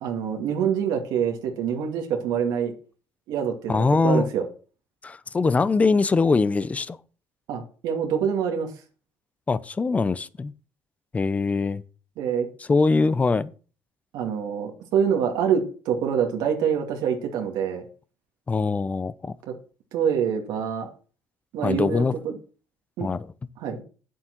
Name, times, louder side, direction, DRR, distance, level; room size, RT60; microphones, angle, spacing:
voice 1, 0.0-2.7 3.3-4.5 7.5-8.7 12.2-12.5 14.1-17.9 19.5-19.6 19.9-20.9 21.5-22.3 23.0-23.1 23.6-23.8, right 7 dB, 80° right, 2.2 m, -25 dB
voice 2, 3.7-4.3 5.0-7.0 9.5-10.5 11.1-11.8 12.7-13.5 18.5-19.4 21.6-22.2 23.0-23.3, left 4 dB, 20° left, 0.6 m, -22 dB
9.1 x 7.7 x 6.0 m
cardioid pair, 120°, 7 cm